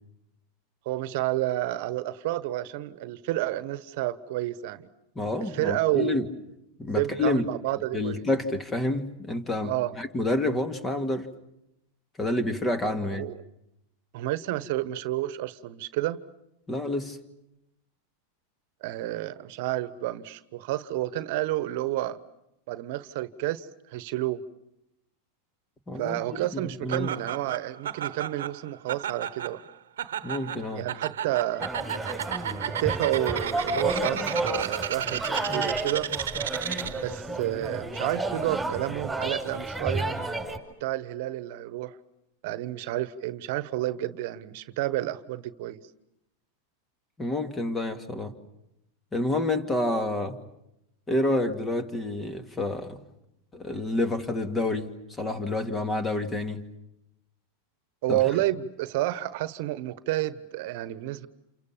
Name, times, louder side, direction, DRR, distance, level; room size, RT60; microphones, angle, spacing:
voice 1, 0.8-4.9 5.4-6.3 7.0-8.2 9.6-9.9 13.1-13.4 14.1-16.2 18.8-22.2 22.7-24.4 25.9-29.6 30.7-31.7 32.7-36.1 37.0-40.1 40.8-42.0 42.4-45.8 58.0-61.3, right 15 dB, 60° right, 1.2 m, -30 dB
voice 2, 5.2-6.3 6.8-7.5 7.9-11.3 12.2-13.3 16.7-17.2 25.9-27.1 30.2-30.9 47.2-48.4 49.1-50.4 51.1-53.0 53.5-56.7 58.1-58.2, left 2 dB, 15° left, 2.3 m, -28 dB
Laughter, 26.9-37.1, right 10 dB, 85° right, 1.1 m, -34 dB
sound 1, 31.6-40.6, right 2 dB, 5° right, 5.4 m, -31 dB
29.0 x 28.0 x 7.3 m
hypercardioid pair, 120°, 0 cm